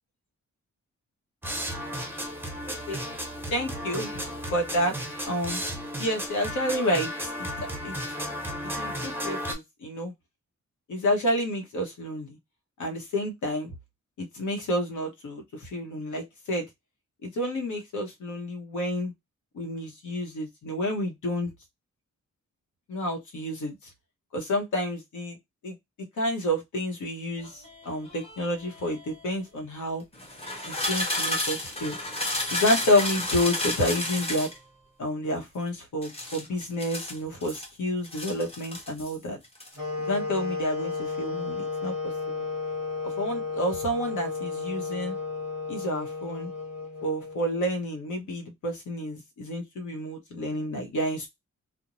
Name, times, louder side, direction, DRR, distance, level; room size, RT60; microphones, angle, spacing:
sound 1, 1.4-9.6, equal, 5° right, 0.5 m, -34 dB
voice 1, 2.7-3.0 3.5-4.1 4.5-4.9 5.3-5.6 6.0-7.3 7.6-8.0 8.8-10.1 10.9-12.4 12.8-13.7 14.2-16.7 17.2-19.1 19.5-21.5 22.9-23.9 24.3-25.4 25.6-25.8 26.2-30.0 30.7-32.0 32.5-34.5 35.0-39.4 40.0-42.4 43.0-45.2 45.7-46.5 47.0-51.3, left 1 dB, 85° left, 0.9 m, -29 dB
sound 2, 27.4-29.3 30.1-34.6 36.0-37.7 38.0-39.2 39.4-39.8, left 1 dB, 20° left, 0.8 m, -32 dB
sound 3, 39.7-47.8, left 4 dB, 55° left, 1.2 m, -33 dB
2.5 x 2.0 x 2.9 m
wide cardioid pair, 115°, 30 cm